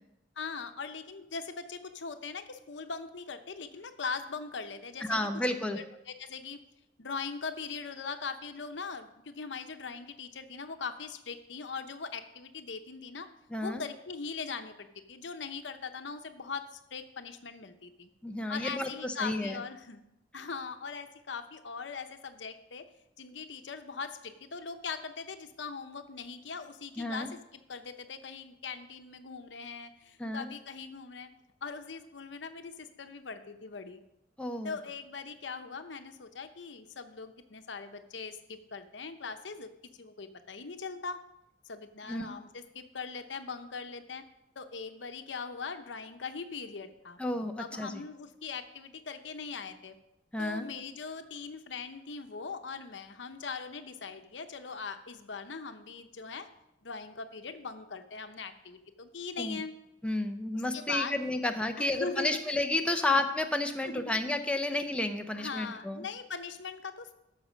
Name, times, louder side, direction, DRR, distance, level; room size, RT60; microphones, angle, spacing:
voice 1, 0.4-5.2 5.7-6.6 7.0-13.3 13.6-18.1 18.5-20.0 20.3-22.9 23.2-31.3 31.6-34.0 34.6-39.7 40.0-41.2 41.6-44.2 44.6-47.2 47.6-50.0 50.4-56.5 56.8-59.7 60.7-61.2 61.8-62.4 62.9-63.2 63.8-64.1 64.7-64.8 65.3-67.1, left 5 dB, 75° left, 8 dB, 0.9 m, -40 dB
voice 2, 5.1-5.8 13.5-13.8 18.2-19.6 27.0-27.3 30.2-30.5 34.4-34.8 42.1-42.3 47.2-48.0 50.3-50.7 59.4-59.6 60.0-66.1, left 2 dB, 5° left, 5 dB, 0.6 m, -31 dB
13.5 x 6.6 x 5.1 m, 0.88 s
head